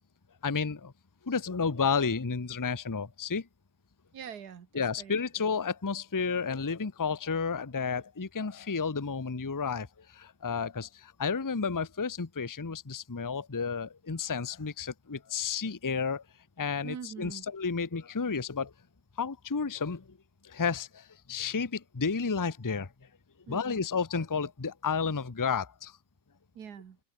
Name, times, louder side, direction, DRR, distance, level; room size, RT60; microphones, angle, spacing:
voice 1, 0.4-0.9 1.2-3.5 4.7-16.2 16.6-18.7 19.2-20.2 20.4-22.9 23.5-26.0, left 5 dB, 15° left, 0.7 m, -31 dB
voice 2, 4.1-5.2 16.8-17.5 23.5-23.8 26.6-27.0, right 8 dB, 80° right, 2.0 m, -43 dB
omnidirectional pair, 1.7 m